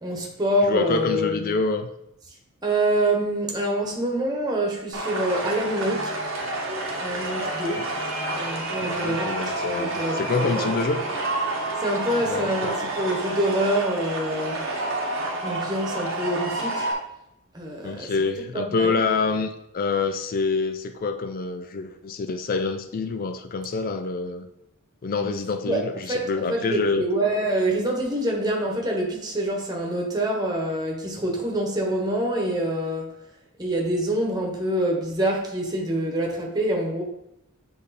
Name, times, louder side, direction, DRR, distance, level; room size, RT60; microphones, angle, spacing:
voice 1, 0.0-1.5 2.6-6.2 7.0-7.9 8.3-10.8 11.8-14.6 15.4-16.9 17.5-18.1 18.5-19.0 25.1-25.3 25.6-33.1 33.6-37.0, right 1 dB, 20° right, 0 dB, 1.2 m, -26 dB
voice 2, 0.6-1.9 7.8-7.9 8.8-11.0 12.2-12.9 17.8-24.5 25.0-27.1, left 4 dB, 40° left, 7 dB, 0.4 m, -26 dB
sound 1, 4.9-16.9, right 2 dB, 65° right, 1.1 m, -29 dB
7.6 x 3.4 x 4.2 m, 0.80 s
head